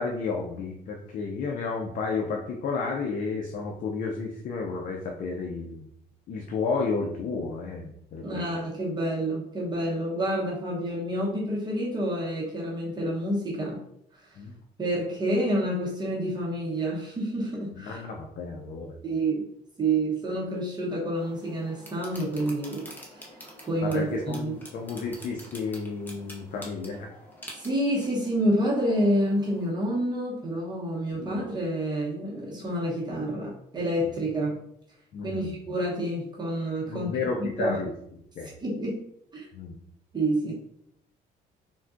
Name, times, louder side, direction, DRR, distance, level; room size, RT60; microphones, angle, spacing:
voice 1, 0.0-5.9 6.3-8.4 14.4-14.6 17.7-19.0 23.8-27.1 31.1-31.4 34.0-34.1 35.1-35.6 36.9-37.9 38.4-38.5 39.5-39.8, left 4 dB, 55° left, 1 dB, 0.4 m, -32 dB
voice 2, 8.2-13.8 14.8-18.0 19.0-19.5 19.8-23.3 23.7-24.6 27.5-34.6 35.2-37.1 37.4-37.8 38.6-39.0 39.3-39.4 40.1-40.5, right 1 dB, 25° right, -5 dB, 0.8 m, -28 dB
sound 1, 21.1-29.7, equal, 10° left, 0.7 m, -47 dB
3.5 x 2.2 x 2.4 m, 0.73 s
cardioid pair, 110°, 17 cm